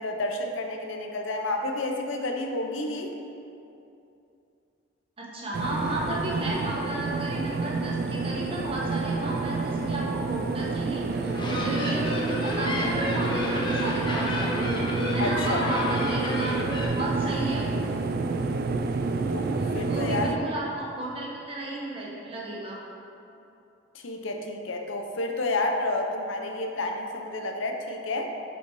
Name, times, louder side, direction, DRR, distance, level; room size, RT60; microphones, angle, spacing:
voice 1, 0.0-3.1 15.2-15.6 19.3-20.3 23.9-28.3, left 2 dB, 80° left, 3 dB, 0.7 m, -30 dB
voice 2, 5.2-14.7 15.1-17.8 19.6-22.8, right 1 dB, 30° right, -5 dB, 1.2 m, -33 dB
sound 1, 5.5-20.4, right 3 dB, 50° right, 0.3 m, -29 dB
sound 2, 11.1-16.9, left 1 dB, 25° left, 0.8 m, -31 dB
6.5 x 5.3 x 4.7 m, 2.7 s
head